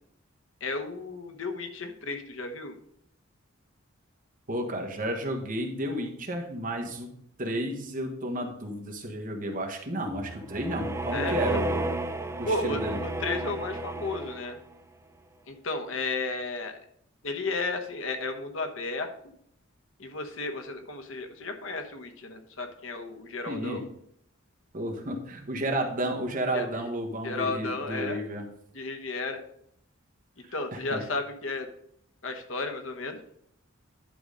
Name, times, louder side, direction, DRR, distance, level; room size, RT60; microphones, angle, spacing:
voice 1, 0.6-2.8 11.1-11.6 12.4-14.6 15.5-16.8 17.2-19.1 20.0-23.9 26.5-26.8 27.2-28.2 28.7-29.4 30.5-31.7 32.2-33.2, left 3 dB, 70° left, 6 dB, 1.2 m, -33 dB
voice 2, 4.5-7.1 7.4-11.9 12.4-13.0 23.5-23.8 24.7-28.4 30.4-31.0, right 1 dB, 45° right, 2 dB, 1.5 m, -32 dB
sound 1, 10.1-14.7, right 2 dB, 15° right, 0.5 m, -32 dB
10.5 x 4.0 x 5.1 m, 0.70 s
head